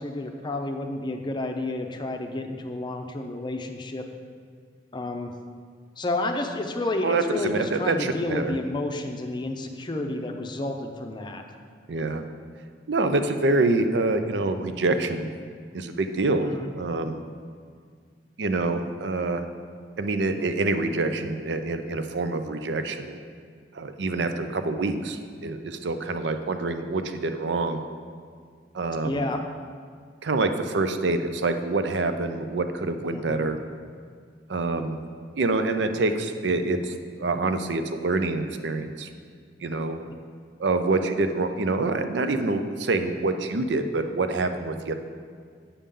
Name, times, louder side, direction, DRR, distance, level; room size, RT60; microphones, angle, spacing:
voice 1, 0.0-4.0 4.9-5.3 6.0-11.4 16.4-16.7 29.0-29.4 33.1-33.5 40.0-40.1, left 2 dB, 25° left, 4 dB, 0.6 m, -30 dB
voice 2, 7.0-8.6 11.9-12.2 12.9-15.3 15.7-16.5 16.8-17.2 18.4-19.4 20.0-23.2 23.7-27.8 28.7-29.3 30.2-33.6 34.5-35.0 35.4-39.1 39.6-40.0 40.6-44.9, right 3 dB, 75° right, 8 dB, 0.5 m, -26 dB
8.5 x 6.8 x 3.7 m, 2.1 s
head